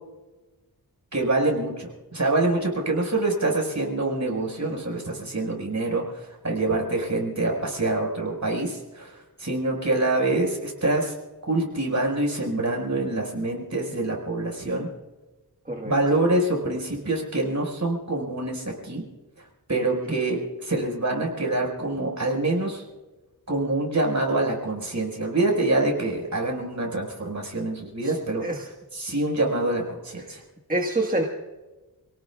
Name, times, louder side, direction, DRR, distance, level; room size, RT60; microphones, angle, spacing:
voice 1, 1.1-11.1 11.5-14.9 15.8-19.0 19.7-22.8 23.5-28.4 28.9-30.4, right 2 dB, 45° right, 0 dB, 5.2 m, -25 dB
voice 2, 30.7-31.2, right 1 dB, 20° right, 0 dB, 1.5 m, -26 dB
29.5 x 18.0 x 2.4 m, 1.2 s
wide cardioid pair, 80°, 38 cm